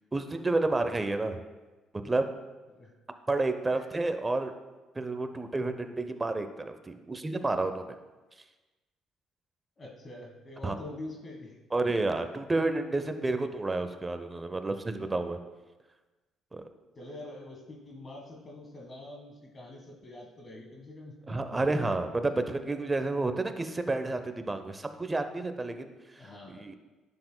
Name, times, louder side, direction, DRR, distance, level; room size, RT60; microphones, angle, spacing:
voice 1, 0.1-1.4 2.0-2.3 3.3-4.5 4.9-8.0 10.6-10.7 11.7-15.4 16.5-16.6 21.3-26.7, right 2 dB, 20° right, 8 dB, 0.7 m, -30 dB
voice 2, 9.8-11.6 11.9-12.0 16.9-21.6 26.2-26.7, left 2 dB, 40° left, 1 dB, 1.5 m, -45 dB
10.0 x 7.0 x 2.2 m, 1.2 s
supercardioid pair, 65°, 0 cm